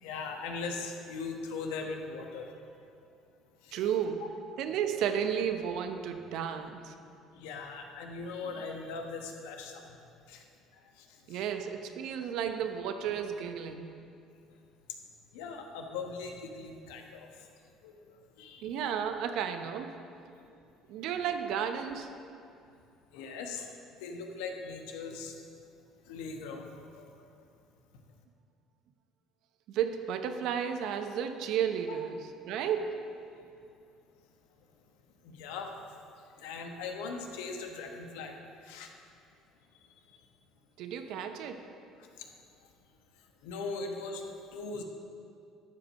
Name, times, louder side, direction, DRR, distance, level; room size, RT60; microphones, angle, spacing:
voice 1, 0.0-2.5 3.6-3.8 4.2-4.3 7.3-9.9 10.3-10.4 11.0-11.1 11.3-11.4 15.3-17.3 17.8-18.0 18.4-18.7 23.1-23.7 24.0-25.4 26.1-27.1 35.2-35.7 36.4-38.3 38.6-38.9 43.4-44.2 44.5-44.8, left 4 dB, 80° left, 3 dB, 1.1 m, -39 dB
voice 2, 3.7-4.2 4.6-6.9 11.3-13.9 18.6-19.9 20.9-22.1 29.7-32.2 32.5-33.0 40.8-41.7, right 8 dB, 70° right, 7 dB, 0.8 m, -33 dB
12.5 x 5.1 x 6.4 m, 2.5 s
hypercardioid pair, 65°, 0 cm